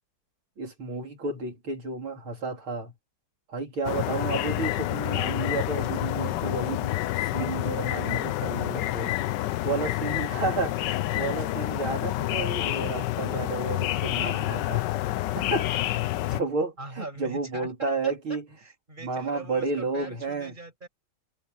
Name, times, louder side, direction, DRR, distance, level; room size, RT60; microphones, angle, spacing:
voice 1, 0.6-2.9 3.5-6.9 7.3-9.1 9.6-14.9 15.3-15.7 16.3-18.4 19.0-20.5, right 3 dB, 70° right, 4.4 m, -31 dB
sound 1, 3.8-16.4, left 15 dB, 75° left, 1.1 m, -28 dB
voice 2, 16.8-20.9, right 2 dB, 20° right, 6.1 m, -41 dB
omnidirectional pair, 2.3 m